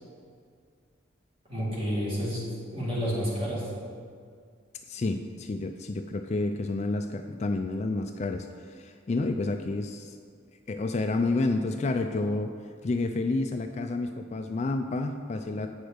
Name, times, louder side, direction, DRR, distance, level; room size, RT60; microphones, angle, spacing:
voice 1, 1.5-3.7, equal, 30° right, -6 dB, 2.4 m, -30 dB
voice 2, 4.9-10.2 10.7-12.5 12.8-15.7, left 2 dB, 35° left, 6 dB, 0.3 m, -29 dB
8.8 x 6.3 x 5.0 m, 2.1 s
head